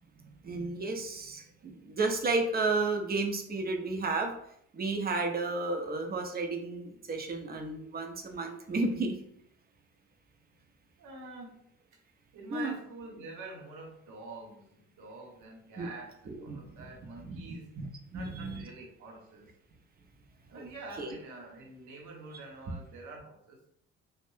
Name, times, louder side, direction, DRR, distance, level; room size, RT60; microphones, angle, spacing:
voice 1, 0.4-4.3 4.7-9.1 12.5-12.7 15.8-15.9 16.5-16.6 17.3-17.4 17.8-17.9 18.1-18.6 20.5-20.7 21.0-21.2, right 3 dB, 25° right, 4 dB, 0.5 m, -32 dB
voice 2, 11.0-11.6 12.3-17.7 18.1-19.5 20.5-23.7, right 3 dB, 60° right, 0 dB, 0.9 m, -46 dB
2.5 x 2.1 x 3.1 m, 0.71 s
hypercardioid pair, 45°, 35 cm